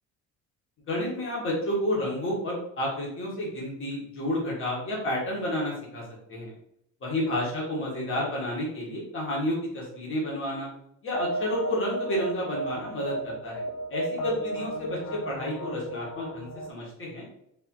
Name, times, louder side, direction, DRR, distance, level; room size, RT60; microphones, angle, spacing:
voice 1, 0.9-6.0 6.3-6.5 7.0-10.7 11.0-13.6 13.9-17.3, left 1 dB, 40° left, -4 dB, 1.4 m, -30 dB
sound 1, 11.1-16.7, right 1 dB, 70° left, 0.5 m, -35 dB
3.6 x 3.3 x 3.0 m, 0.74 s
cardioid pair, 150°, 33 cm